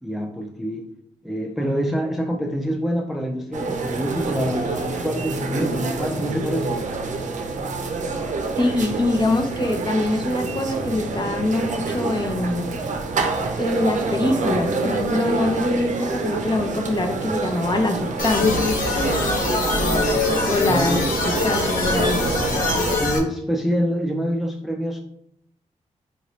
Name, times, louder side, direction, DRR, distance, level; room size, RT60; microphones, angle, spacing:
voice 1, 0.0-0.9 1.2-6.8 20.7-21.2 23.0-25.0, equal, ahead, 2 dB, 0.5 m, -26 dB
sound 1, 3.5-23.0, right 4 dB, 65° right, 0.6 m, -27 dB
sound 2, 4.2-9.5 9.8-10.5 10.9-11.6 12.0-12.7 13.1-13.8 14.2-14.8 15.4-15.5, left 2 dB, 70° left, 1.7 m, -39 dB
voice 2, 8.6-12.7 13.6-18.7 20.5-21.0 21.4-22.2, left 2 dB, 35° left, 4 dB, 0.8 m, -24 dB
sound 3, 18.2-23.2, left 2 dB, 90° left, 0.7 m, -23 dB
5.1 x 2.6 x 3.1 m, 0.74 s
cardioid pair, 60°, 13 cm